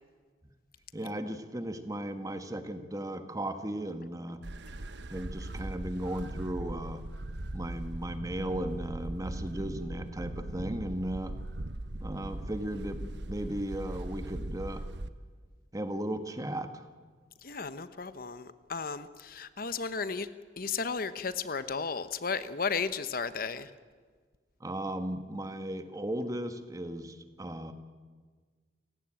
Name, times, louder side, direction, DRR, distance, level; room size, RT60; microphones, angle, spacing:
voice 1, 0.9-4.4 5.1-7.1 7.5-11.4 12.0-14.8 15.7-16.9 24.6-27.7, right 1 dB, 20° right, 9 dB, 1.5 m, -36 dB
sound 1, 4.4-15.1, right 1 dB, 75° right, 1.1 m, -39 dB
voice 2, 17.4-20.3 20.6-23.7, left 5 dB, 55° left, 13 dB, 1.0 m, -34 dB
30.0 x 16.5 x 9.0 m, 1.5 s
head